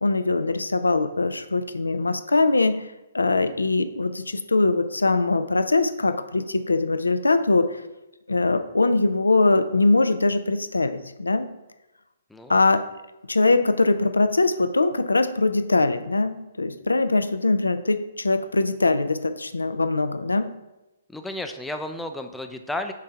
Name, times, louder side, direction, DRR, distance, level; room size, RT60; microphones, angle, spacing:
voice 1, 0.0-2.8 3.1-7.8 8.3-11.5 12.5-12.8 13.3-20.5, left 3 dB, 90° left, 10 dB, 0.4 m, -22 dB
voice 2, 12.3-12.7 21.1-22.9, left 1 dB, 5° left, 5 dB, 0.5 m, -33 dB
7.5 x 2.8 x 4.5 m, 1.0 s
figure-of-eight pair, 130°, 0 cm